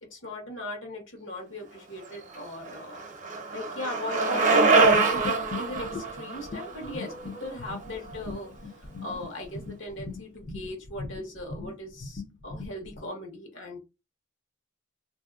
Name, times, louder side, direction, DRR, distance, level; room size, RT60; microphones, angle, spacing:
voice 1, 0.1-3.0 3.5-4.8 5.1-8.5 8.8-13.8, left 1 dB, 70° left, 2 dB, 1.2 m, -38 dB
Bicycle, 2.1-8.1, right 3 dB, 40° right, 0.8 m, -25 dB
sound 1, 4.8-13.1, left 3 dB, 50° left, 0.7 m, -40 dB
3.4 x 2.7 x 2.4 m, 0.25 s
head